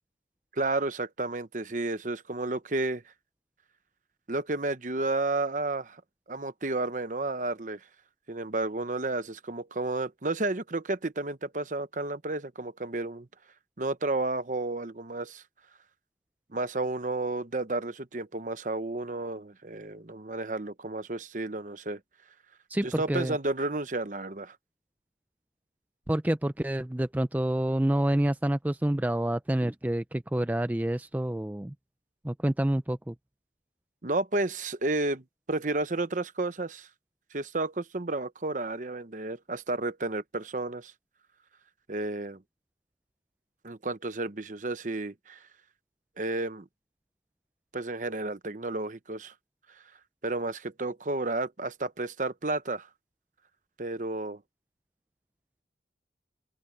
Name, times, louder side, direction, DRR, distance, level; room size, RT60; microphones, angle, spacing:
voice 1, 0.5-3.0 4.3-6.0 6.3-7.8 8.3-13.3 13.8-15.4 16.5-22.0 22.8-24.6 34.0-36.9 37.3-40.9 41.9-42.4 43.6-45.4 46.2-46.7 47.7-49.3 50.2-52.9 53.8-54.4, right 2 dB, 45° right, 0.9 m, -32 dB
voice 2, 22.7-23.4 26.1-31.7 32.2-33.1, right 1 dB, 10° right, 0.4 m, -28 dB
open air
head